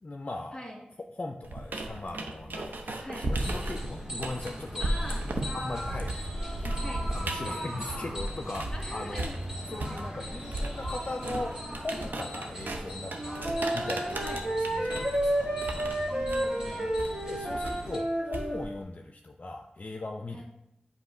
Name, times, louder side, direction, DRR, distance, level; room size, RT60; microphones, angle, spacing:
voice 1, 0.0-0.6 1.1-4.9 5.5-6.5 7.1-9.3 9.7-13.4 13.7-14.4 14.8-15.6 17.3-20.4, left 2 dB, 45° left, 4 dB, 0.4 m, -39 dB
sound 1, 1.4-8.8 9.2-18.8, right 1 dB, 85° right, 0.7 m, -35 dB
sound 2, 3.3-18.0, equal, 20° right, 1.8 m, -40 dB
voice 2, 4.8-5.2 6.8-7.1 8.7-9.4 14.2-14.6 16.1-16.9 20.3-20.4, left 1 dB, 20° left, -2 dB, 1.8 m, -42 dB
Wind instrument woodwind instrument, 13.1-18.7, right 1 dB, 50° right, 1.9 m, -31 dB
7.8 x 2.9 x 5.0 m, 0.84 s
wide cardioid pair, 50°, 3 cm